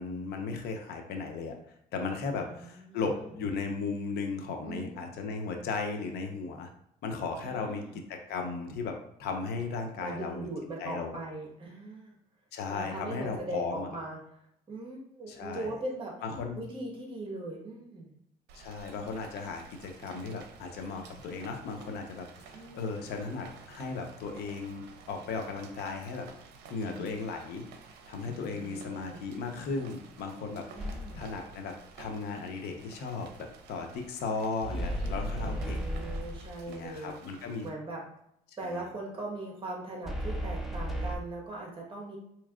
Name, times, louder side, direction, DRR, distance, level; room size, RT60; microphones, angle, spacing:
voice 1, 0.0-1.6 1.9-6.7 7.0-7.8 8.1-8.9 9.2-10.5 10.8-11.1 12.5-13.9 15.3-15.8 16.2-16.6 18.5-26.3 26.7-27.6 28.1-30.6 31.1-33.3 33.7-35.8 36.7-37.7 38.5-38.7, left 4 dB, 75° left, 4 dB, 0.7 m, -36 dB
voice 2, 2.3-3.3 4.6-5.4 7.4-8.0 10.0-12.1 12.7-14.2 14.7-16.2 16.5-18.1 22.5-22.8 26.7-27.1 28.2-29.2 30.7-31.2 35.4-38.0 38.6-42.2, right 2 dB, 30° right, -1 dB, 1.3 m, -40 dB
Rain, 18.5-37.7, right 5 dB, 85° right, 0.6 m, -53 dB
sound 1, 30.8-31.4 34.6-36.7 40.0-41.2, equal, ahead, 0.5 m, -34 dB
4.3 x 3.0 x 2.4 m, 0.75 s
cardioid pair, 110°, 17 cm